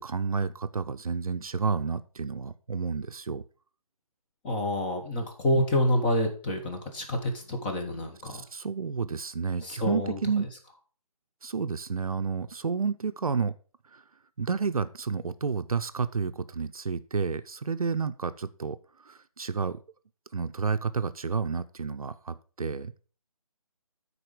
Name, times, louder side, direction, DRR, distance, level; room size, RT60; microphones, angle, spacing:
voice 1, 0.0-3.4 8.3-10.5 11.4-13.5 14.4-18.8 19.1-19.8 20.3-22.9, right 5 dB, 70° right, 11 dB, 0.6 m, -30 dB
voice 2, 4.4-8.4 9.6-10.5, left 1 dB, 15° left, 2 dB, 1.1 m, -28 dB
10.0 x 4.3 x 5.0 m, 0.38 s
figure-of-eight pair, 150°, 19 cm